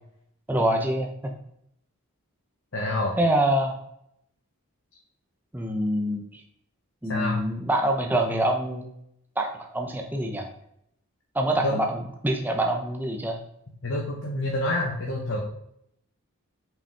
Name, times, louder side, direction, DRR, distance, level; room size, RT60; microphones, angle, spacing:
voice 1, 0.5-1.1 3.2-3.8 5.5-6.4 7.0-8.9 9.4-10.5 11.3-12.0 12.2-13.4, right 1 dB, 10° right, 2 dB, 0.6 m, -25 dB
voice 2, 2.7-3.1 7.1-7.5 11.6-11.8 13.8-15.4, left 1 dB, 60° left, -2 dB, 1.0 m, -27 dB
5.7 x 5.1 x 3.4 m, 0.74 s
head